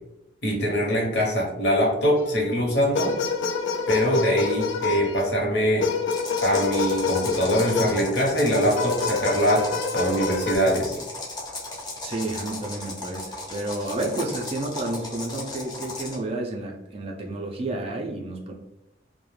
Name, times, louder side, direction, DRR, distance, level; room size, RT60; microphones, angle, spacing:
voice 1, 0.4-3.2 3.9-5.9 6.4-11.0, equal, 65° left, -1 dB, 0.9 m, -23 dB
sound 1, 2.2-2.5 2.9-5.3 5.8-8.1 8.8-10.6, left 5 dB, 80° left, 0.3 m, -27 dB
sound 2, 6.1-16.3, left 2 dB, 25° left, 0.5 m, -36 dB
voice 2, 12.0-18.5, right 2 dB, 30° right, 1 dB, 0.3 m, -31 dB
2.3 x 2.1 x 3.1 m, 0.90 s
head